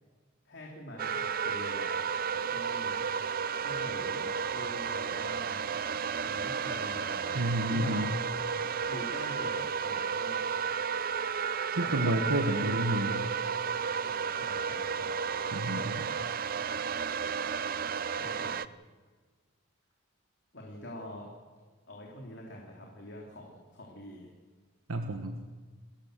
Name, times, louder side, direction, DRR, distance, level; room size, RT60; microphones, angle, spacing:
voice 1, 0.4-3.0 3.6-5.6 6.2-8.1 8.9-10.5 11.8-12.2 12.6-13.3 14.0-15.2 18.2-18.6 20.5-21.3 21.9-24.3, equal, 55° left, -2 dB, 3.4 m, -45 dB
sound 1, 1.0-18.7, right 6 dB, 45° right, 0.5 m, -33 dB
voice 2, 7.3-8.1 11.7-13.2 15.5-16.1 24.9-25.3, right 1 dB, 85° right, 5 dB, 1.4 m, -30 dB
30.0 x 14.5 x 6.7 m, 1.4 s
head